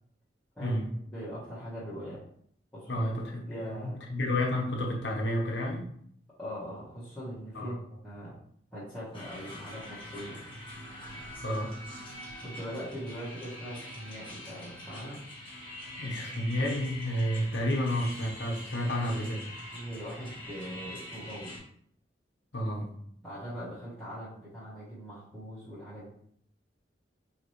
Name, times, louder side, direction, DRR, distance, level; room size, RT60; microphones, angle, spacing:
voice 1, 1.1-2.2 2.7-3.1 3.5-4.0 6.4-8.3 8.7-10.4 12.4-15.2 18.8-19.0 19.7-21.6 23.2-26.1, equal, 5° left, -13 dB, 1.3 m, -41 dB
voice 2, 2.9-5.9 7.5-7.7 11.4-11.7 16.0-19.4 22.5-22.9, left 1 dB, 80° left, 1 dB, 0.9 m, -31 dB
sound 1, 9.1-21.6, left 1 dB, 30° left, 1.2 m, -44 dB
4.9 x 2.9 x 3.1 m, 0.65 s
head